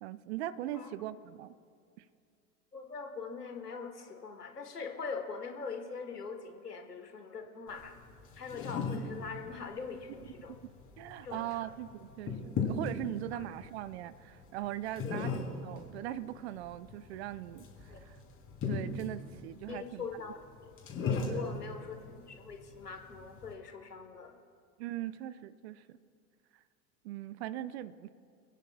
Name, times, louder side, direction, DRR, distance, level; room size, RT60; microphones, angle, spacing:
voice 1, 0.0-1.6 2.0-2.1 11.0-18.2 18.7-20.0 21.3-21.6 24.8-26.0 26.5-26.6 27.0-28.1, right 13 dB, 45° right, 17 dB, 0.5 m, -40 dB
voice 2, 2.7-8.0 8.4-10.5 11.2-11.7 15.0-15.2 17.9-18.0 19.7-20.4 21.3-24.4, left 5 dB, 80° left, 6 dB, 1.3 m, -42 dB
sound 1, 7.7-23.5, left 4 dB, 25° left, 3.2 m, -39 dB
29.0 x 10.0 x 2.3 m, 2.3 s
figure-of-eight pair, 85°, 46 cm